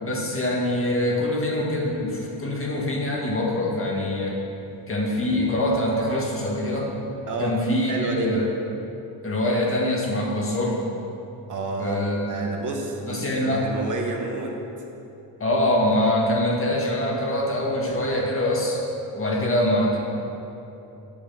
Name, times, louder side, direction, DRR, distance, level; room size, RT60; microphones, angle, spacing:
voice 1, 0.0-4.5 4.9-6.9 7.4-8.5 9.2-10.8 11.8-12.4 13.0-13.6 15.4-18.8 19.1-20.0, left 1 dB, 30° left, -2 dB, 1.7 m, -24 dB
sound 1, 5.0-8.5, right 4 dB, 30° right, 0.8 m, -40 dB
voice 2, 7.3-7.6 7.9-8.3 11.5-12.0 12.3-14.6, right 2 dB, 50° right, 0 dB, 1.4 m, -29 dB
8.6 x 6.5 x 7.7 m, 2.9 s
cardioid pair, 135°, 40 cm